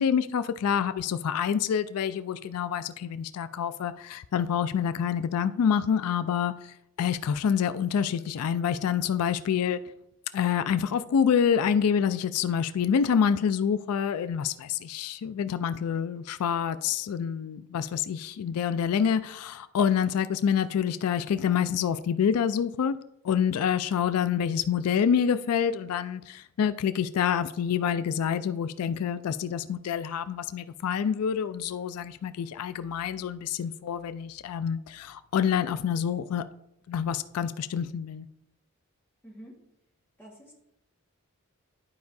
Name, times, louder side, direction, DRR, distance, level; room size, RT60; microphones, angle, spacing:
voice 1, 0.0-6.5 7.0-9.8 10.3-23.0 23.2-36.5 36.9-38.3, left 7 dB, 85° left, 0.3 m, -27 dB
voice 2, 40.2-40.5, right 1 dB, 10° left, 1.4 m, -47 dB
11.5 x 4.7 x 2.6 m
head